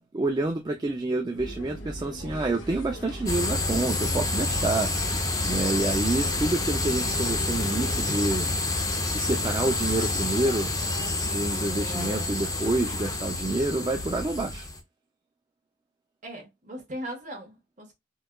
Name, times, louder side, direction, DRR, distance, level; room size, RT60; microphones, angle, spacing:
voice 1, 0.0-8.5 9.1-10.7 11.2-14.7, right 2 dB, 20° right, 0.4 m, -28 dB
sound 1, 1.3-8.0, equal, 85° left, 1.0 m, -39 dB
sound 2, 3.3-14.8, left 2 dB, 20° left, 0.6 m, -28 dB
voice 2, 16.2-17.9, equal, 40° right, 1.2 m, -38 dB
4.5 x 2.3 x 2.2 m
head